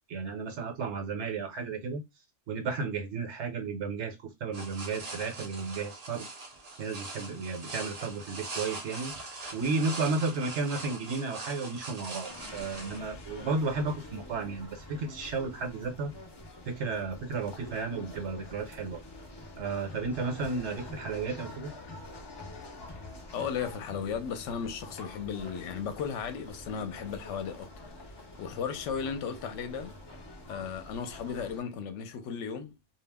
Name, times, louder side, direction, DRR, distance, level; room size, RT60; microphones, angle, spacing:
voice 1, 0.1-2.0 2.5-4.2 4.4-6.3 6.8-9.1 9.5-16.1 16.7-19.0 19.6-21.7, right 4 dB, 70° right, 1.0 m, -33 dB
sound 1, 4.5-13.0, right 2 dB, 45° right, 0.5 m, -42 dB
sound 2, 12.3-31.6, left 1 dB, 40° left, 0.4 m, -46 dB
voice 2, 23.3-27.7 28.4-30.0 30.5-32.7, left 7 dB, 75° left, 0.9 m, -35 dB
2.3 x 2.0 x 3.4 m
omnidirectional pair, 1.3 m